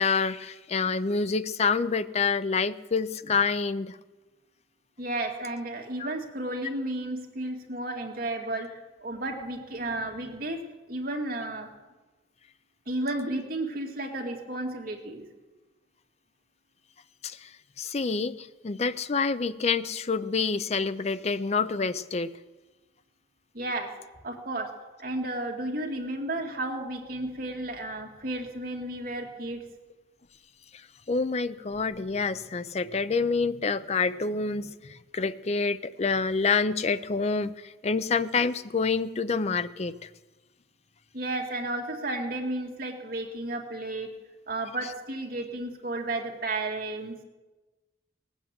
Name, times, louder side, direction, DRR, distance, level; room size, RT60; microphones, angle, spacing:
voice 1, 0.0-4.0 17.2-17.5 17.8-22.3 31.1-39.9, left 4 dB, 35° left, 14 dB, 0.5 m, -27 dB
voice 2, 5.0-8.7 9.0-10.6 10.9-11.7 12.9-15.2 23.5-23.9 24.2-24.7 25.0-29.6 41.1-44.1 44.5-47.1, right 2 dB, 50° right, 2 dB, 2.0 m, -33 dB
18.0 x 8.1 x 7.5 m, 1.2 s
head